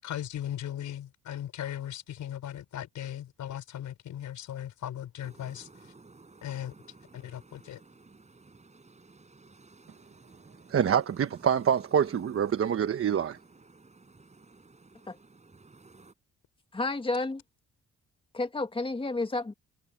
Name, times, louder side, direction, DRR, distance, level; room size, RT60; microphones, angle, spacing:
voice 1, 0.0-5.9 6.4-6.7 7.1-7.8, left 11 dB, 75° left, 5.6 m, -38 dB
sound 1, 5.2-16.1, right 3 dB, 25° right, 6.0 m, -55 dB
voice 2, 10.7-13.4, right 8 dB, 45° right, 1.2 m, -26 dB
voice 3, 16.7-17.4 18.3-19.5, left 2 dB, 15° left, 1.8 m, -31 dB
cardioid pair, 90°, 30 cm